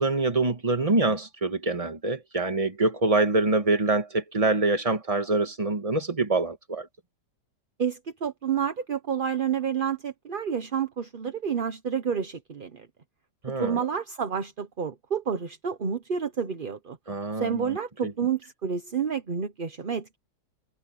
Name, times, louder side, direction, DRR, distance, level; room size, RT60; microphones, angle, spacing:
voice 1, 0.0-6.9 13.4-13.8 17.1-17.8 18.0-18.1, right 3 dB, 20° right, 1.6 m, -25 dB
voice 2, 7.8-12.9 13.5-17.0 17.4-20.2, right 7 dB, 40° right, 0.9 m, -29 dB
omnidirectional pair, 1.9 m